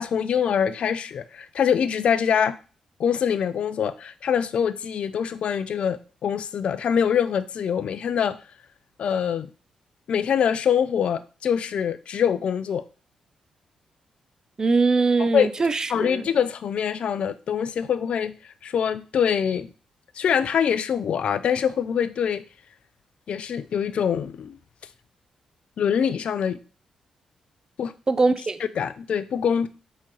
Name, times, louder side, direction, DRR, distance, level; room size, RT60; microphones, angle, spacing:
voice 1, 0.0-2.6 3.0-8.4 9.0-9.5 10.1-12.8 15.2-15.5 15.9-19.7 20.2-22.4 23.3-24.6 25.8-26.6 27.8-27.9 28.8-29.7, left 8 dB, 65° left, 0.4 m, -24 dB
voice 2, 14.6-16.3 28.1-28.6, right 3 dB, 35° right, 0.4 m, -22 dB
4.3 x 3.6 x 3.0 m
supercardioid pair, 55°, 2 cm